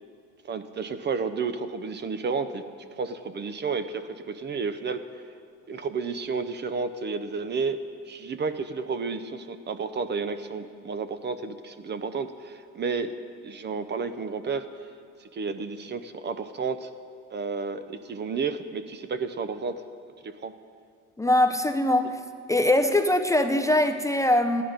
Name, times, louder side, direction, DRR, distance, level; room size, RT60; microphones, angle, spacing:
voice 1, 0.4-2.6 2.9-5.0 5.7-7.8 8.0-13.1 13.4-14.6 15.3-16.9 17.3-19.8 20.2-20.5, right 5 dB, 35° right, 11 dB, 0.6 m, -31 dB
voice 2, 21.2-22.2 22.5-24.6, left 1 dB, 10° left, 7 dB, 0.5 m, -22 dB
13.5 x 11.0 x 5.1 m, 2.3 s
cardioid pair, 105°, 30 cm